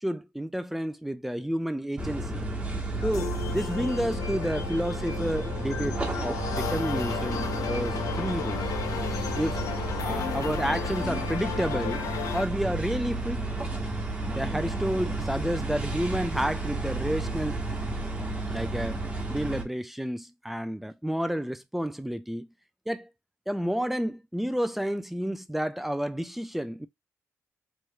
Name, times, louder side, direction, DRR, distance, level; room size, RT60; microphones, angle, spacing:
voice 1, 0.0-2.4 3.0-8.6 9.4-9.6 10.0-12.0 12.3-13.4 14.3-17.6 18.5-19.0 19.3-22.5 22.9-23.1 23.5-26.9, equal, 5° right, 0.4 m, -30 dB
sound 1, 2.0-19.6, right 2 dB, 20° right, 1.2 m, -32 dB
sound 2, 3.0-12.5, left 8 dB, 80° left, 0.7 m, -34 dB
4.7 x 3.1 x 2.2 m
cardioid pair, 105°, 6 cm